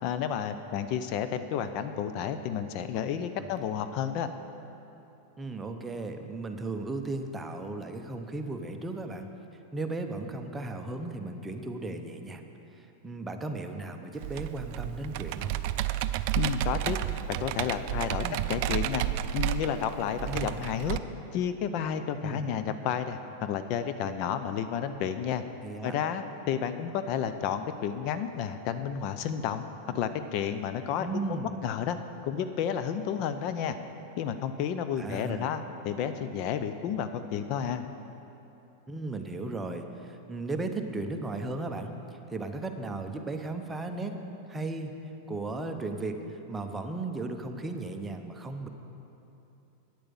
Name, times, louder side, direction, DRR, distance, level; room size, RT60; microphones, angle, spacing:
voice 1, 0.0-4.3 16.4-17.0 17.3-18.2 18.5-19.0 19.3-21.0 21.3-25.4 25.8-32.0 32.2-33.8 34.1-37.8, left 8 dB, 50° left, 10 dB, 0.5 m, -31 dB
voice 2, 5.4-9.3 9.7-12.5 12.7-15.5 18.2-18.4 20.2-20.7 22.2-22.4 25.6-26.0 31.0-31.6 35.0-35.6 38.9-44.2 44.5-44.9 45.3-48.7, right 2 dB, 10° right, 5 dB, 0.8 m, -36 dB
Computer keyboard, 14.2-21.0, right 13 dB, 55° right, 0.4 m, -31 dB
9.3 x 8.8 x 7.0 m, 2.9 s
hypercardioid pair, 125°, 0 cm